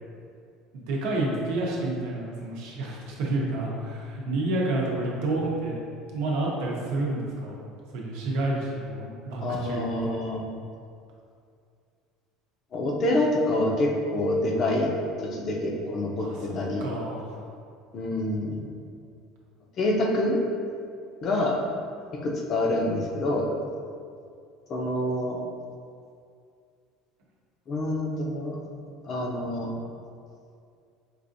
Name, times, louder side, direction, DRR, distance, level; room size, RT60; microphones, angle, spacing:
voice 1, 0.7-5.8 6.1-7.6 7.9-10.2 16.2-17.4, right 2 dB, 75° right, -3 dB, 0.8 m, -29 dB
voice 2, 9.4-10.4 12.7-14.9 15.2-16.8 17.9-18.6 19.8-20.4 21.2-21.6 22.1-23.5 24.7-25.4 27.7-28.6 29.0-29.7, left 1 dB, 40° left, -1 dB, 0.6 m, -26 dB
4.7 x 2.5 x 2.6 m, 2.3 s
cardioid pair, 130°, 0 cm